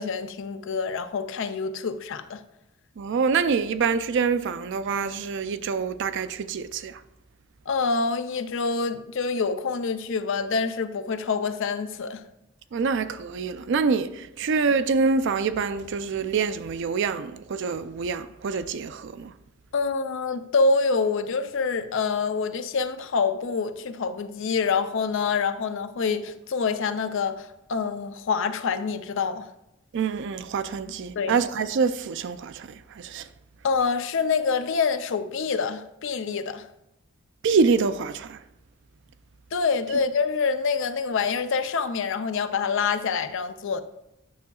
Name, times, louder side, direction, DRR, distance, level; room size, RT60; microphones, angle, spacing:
voice 1, 0.0-2.4 7.7-12.2 19.7-29.5 31.2-31.4 33.6-36.6 39.5-43.8, left 5 dB, 65° left, 0.5 m, -26 dB
voice 2, 3.0-7.0 12.7-19.3 29.9-32.7 33.0-33.3 37.4-38.4, right 5 dB, 60° right, 0.4 m, -26 dB
9.4 x 6.9 x 2.3 m
head